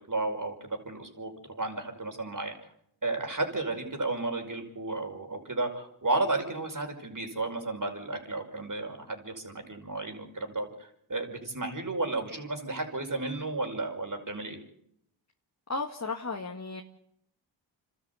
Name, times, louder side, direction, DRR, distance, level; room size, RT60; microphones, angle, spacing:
voice 1, 0.1-2.5 3.0-10.7 11.1-14.6, right 2 dB, 40° right, 4 dB, 5.5 m, -33 dB
voice 2, 15.7-16.8, left 3 dB, 35° left, 3 dB, 2.0 m, -34 dB
28.5 x 13.0 x 8.3 m, 0.73 s
cardioid pair, 40°, 48 cm